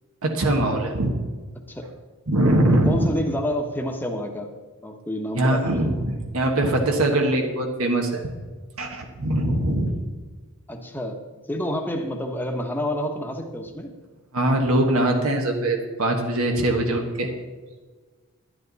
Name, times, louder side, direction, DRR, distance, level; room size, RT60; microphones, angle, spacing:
voice 1, 0.2-1.1 2.3-3.1 5.3-8.2 8.8-9.9 14.3-17.3, right 1 dB, 75° right, 2 dB, 1.4 m, -22 dB
voice 2, 2.7-4.5 4.8-5.9 10.7-11.2 11.5-13.9, equal, 10° left, 3 dB, 1.0 m, -28 dB
11.0 x 11.0 x 4.1 m, 1.4 s
head